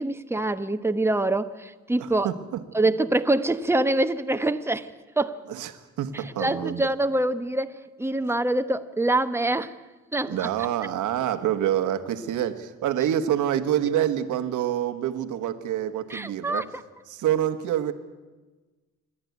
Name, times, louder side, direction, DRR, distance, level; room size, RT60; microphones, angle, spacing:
voice 1, 0.0-2.3 2.7-5.4 6.1-9.7 10.1-10.5 16.1-16.6, right 2 dB, 10° right, 9 dB, 1.1 m, -25 dB
voice 2, 2.0-2.9 5.5-6.9 10.3-16.7 17.1-17.9, right 11 dB, 80° right, 9 dB, 1.4 m, -27 dB
27.0 x 11.0 x 9.5 m, 1.3 s
cardioid pair, 90°, 30 cm